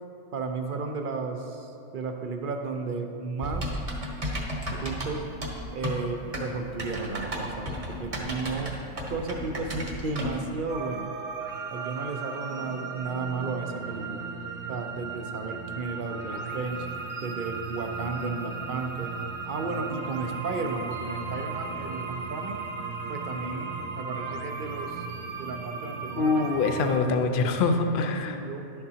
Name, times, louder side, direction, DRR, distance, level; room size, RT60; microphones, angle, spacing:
voice 1, 0.3-3.7 4.8-5.3 5.7-8.7 9.1-11.1 11.7-14.2 14.7-16.9 17.2-19.1 19.5-22.6 23.1-25.1 25.4-26.5 27.0-27.6 28.3-28.8, right 4 dB, 55° right, 5 dB, 0.6 m, -34 dB
Typing, 3.4-10.5, equal, 30° right, 0.9 m, -33 dB
sound 1, 10.7-27.0, right 4 dB, 85° right, 1.0 m, -36 dB
voice 2, 26.2-28.4, left 4 dB, 55° left, 6 dB, 0.6 m, -24 dB
11.0 x 6.8 x 2.8 m, 2.6 s
omnidirectional pair, 1.3 m